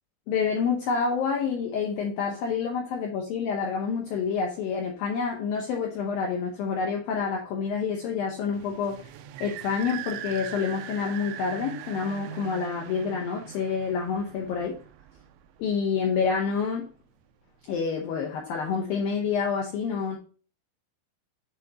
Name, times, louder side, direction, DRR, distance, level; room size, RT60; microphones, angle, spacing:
voice 1, 0.3-9.1 9.4-14.8 15.6-16.9 17.7-20.2, left 5 dB, 80° left, 0 dB, 2.1 m, -28 dB
sound 1, 8.5-15.9, right 11 dB, 85° right, 2.7 m, -41 dB
10.5 x 3.8 x 2.8 m, 0.38 s
omnidirectional pair, 5.2 m